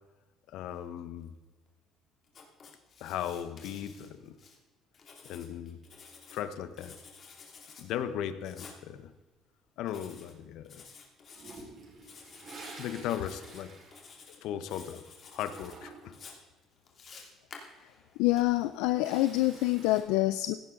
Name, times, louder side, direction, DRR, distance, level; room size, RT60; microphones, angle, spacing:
voice 1, 0.5-1.4 3.0-4.4 5.2-5.8 6.3-6.9 7.8-9.1 9.8-10.8 12.8-13.8 14.4-16.2, left 10 dB, 70° left, 11 dB, 1.0 m, -37 dB
Writing, 2.3-4.6 4.9-6.4 6.8-7.8 8.4-8.8 9.9-10.3 10.6-11.6 12.0-12.7 13.0-13.6 13.9-14.4 14.7-15.7 16.1-18.4, left 5 dB, 40° left, 2.7 m, -52 dB
Toilet flush, 11.3-14.8 15.1-16.2 18.3-20.0, right 3 dB, 40° right, 4.6 m, -50 dB
voice 2, 18.2-20.5, left 17 dB, 90° left, 12 dB, 0.4 m, -26 dB
16.5 x 11.0 x 3.9 m, 1.3 s
cardioid pair, 115°, 0 cm